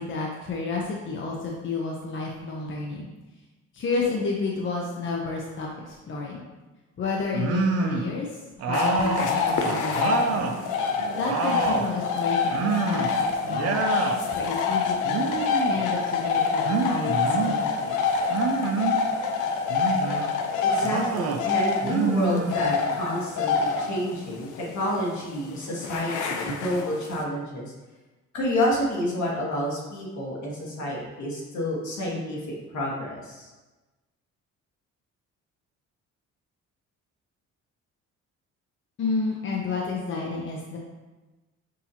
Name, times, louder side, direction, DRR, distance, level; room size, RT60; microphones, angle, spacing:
voice 1, 0.0-3.1 3.7-6.5 7.0-10.5 11.1-15.3 15.7-18.0 39.0-40.8, left 4 dB, 40° left, -1 dB, 0.6 m, -31 dB
sound 1, 7.3-8.1 8.6-10.6 11.0-11.9 12.5-13.2 13.5-14.2 15.0-15.8 16.6-17.6 18.3-19.0 19.7-20.3 20.8-21.4 21.8-22.9, right 4 dB, 55° right, 0.5 m, -27 dB
sound 2, 8.7-27.2, left 5 dB, 85° left, 0.6 m, -27 dB
voice 2, 20.6-27.7 28.3-32.4 32.7-33.5, equal, 70° left, -4 dB, 1.5 m, -29 dB
6.1 x 2.7 x 2.8 m, 1.2 s
cardioid pair, 90°, 30 cm